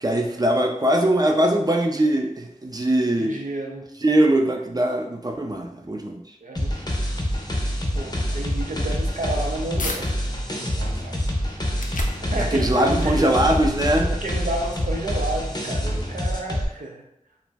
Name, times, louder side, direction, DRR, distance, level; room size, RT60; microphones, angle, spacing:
voice 1, 0.0-3.4 4.0-6.2 12.4-14.2, right 1 dB, 30° right, 3 dB, 0.4 m, -21 dB
voice 2, 3.2-3.9 6.4-6.8 7.9-11.3 12.2-13.6 14.1-17.0, right 2 dB, 85° right, 0 dB, 0.5 m, -32 dB
sound 1, 6.6-16.7, equal, 30° left, 0.6 m, -26 dB
sound 2, 9.0-10.0 10.5-15.8, left 2 dB, 85° left, 0.4 m, -36 dB
2.5 x 2.0 x 3.4 m, 0.79 s
wide cardioid pair, 55°, 13 cm